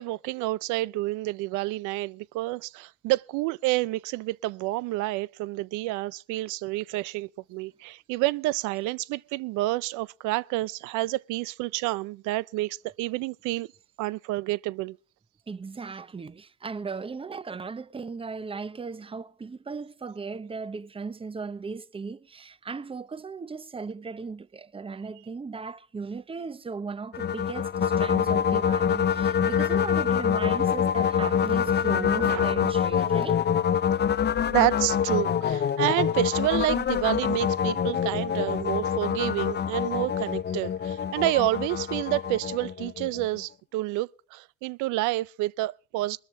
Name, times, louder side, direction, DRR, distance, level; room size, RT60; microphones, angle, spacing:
voice 1, 0.0-13.7 14.0-15.0 31.9-32.4 34.5-46.2, right 18 dB, 80° right, 0.5 m, -29 dB
voice 2, 15.5-33.4, right 4 dB, 20° right, 0.8 m, -37 dB
sound 1, 27.1-43.4, left 8 dB, 35° left, 0.7 m, -25 dB
20.0 x 13.5 x 3.2 m
supercardioid pair, 90°, 30 cm